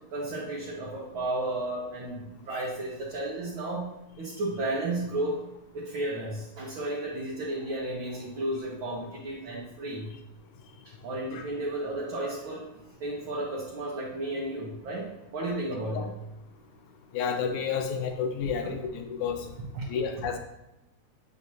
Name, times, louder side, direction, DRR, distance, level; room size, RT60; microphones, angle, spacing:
voice 1, 0.1-3.9 4.2-5.4 5.7-10.0 11.0-12.6 13.0-15.0 15.3-16.1 18.6-18.7 19.7-19.8, right 1 dB, 55° right, -5 dB, 1.7 m, -33 dB
voice 2, 17.1-19.5 19.9-20.4, left 6 dB, 90° left, 5 dB, 2.2 m, -30 dB
7.9 x 6.1 x 2.8 m, 0.93 s
omnidirectional pair, 3.3 m